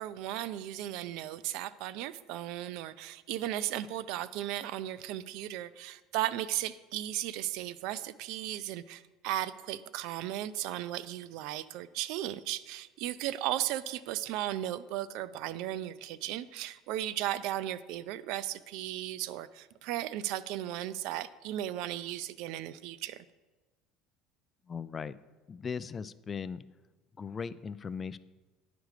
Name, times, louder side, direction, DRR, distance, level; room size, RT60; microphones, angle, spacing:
voice 1, 0.0-23.2, right 13 dB, 70° right, 17 dB, 0.3 m, -36 dB
voice 2, 24.7-25.2 25.5-26.6 27.2-28.2, left 6 dB, 30° left, 15 dB, 0.3 m, -38 dB
10.5 x 5.1 x 4.9 m, 1.2 s
supercardioid pair, 110°, 0 cm